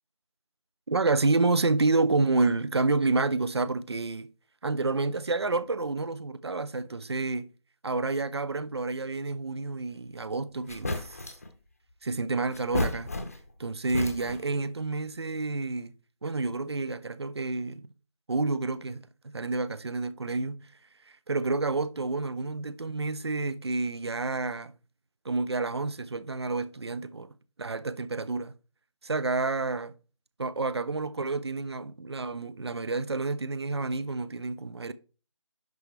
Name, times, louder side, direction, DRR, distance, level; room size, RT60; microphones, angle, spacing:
voice 1, 0.9-4.3 4.6-7.5 7.8-11.4 12.0-13.1 13.6-15.9 16.2-17.9 18.3-20.6 21.1-24.7 25.2-28.5 29.0-29.9 30.4-34.9, right 3 dB, 55° right, 0.7 m, -29 dB
sound 1, 10.2-10.3 10.7-11.5 12.5-13.6 13.9-14.6, left 2 dB, 30° left, 0.8 m, -33 dB
11.0 x 5.4 x 3.2 m
figure-of-eight pair, 175°, 17 cm